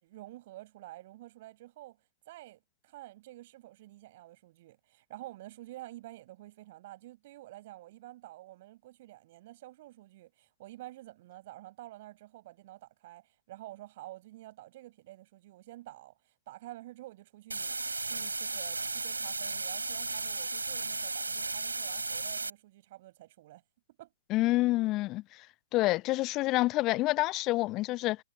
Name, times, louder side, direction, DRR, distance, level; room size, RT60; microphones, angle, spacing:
voice 1, 0.0-2.0 2.3-16.1 16.5-23.6 24.0-24.1, right 16 dB, 45° right, 5.5 m, -49 dB
sound 1, 17.5-22.5, right 3 dB, 80° right, 3.3 m, -35 dB
voice 2, 24.3-25.2 25.7-28.2, left 19 dB, 30° left, 0.6 m, -27 dB
figure-of-eight pair, 120°, 0 cm